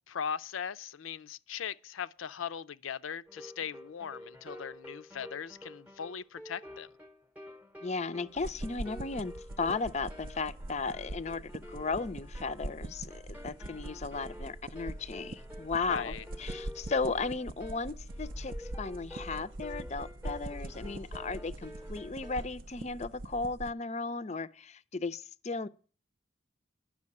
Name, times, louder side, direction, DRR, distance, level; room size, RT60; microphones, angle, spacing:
voice 1, 0.1-6.9 15.9-16.2, left 7 dB, 90° left, 0.5 m, -39 dB
sound 1, 3.3-22.5, left 1 dB, 10° right, 0.8 m, -49 dB
voice 2, 7.8-25.7, left 4 dB, 35° left, 0.5 m, -35 dB
sound 2, 8.3-23.3, equal, 80° right, 1.1 m, -52 dB
sound 3, 8.4-23.7, right 1 dB, 45° right, 0.5 m, -43 dB
11.0 x 6.2 x 8.5 m
head